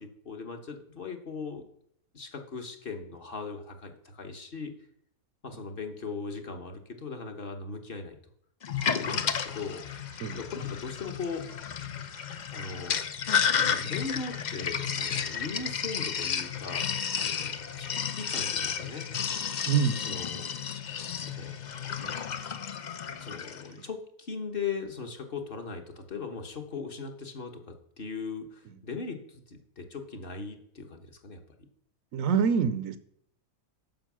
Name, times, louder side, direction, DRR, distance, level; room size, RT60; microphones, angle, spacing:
voice 1, 0.0-1.6 2.1-4.7 5.4-8.2 8.9-11.5 12.5-13.0 13.6-19.1 20.1-20.5 21.2-21.5 23.2-31.4, left 4 dB, 40° left, 5 dB, 1.2 m, -39 dB
Sink (filling or washing), 8.6-23.7, left 7 dB, 65° left, 0.4 m, -32 dB
voice 2, 19.7-20.0 32.1-33.0, right 6 dB, 70° right, 12 dB, 1.0 m, -26 dB
9.1 x 6.5 x 6.1 m, 0.67 s
omnidirectional pair, 1.5 m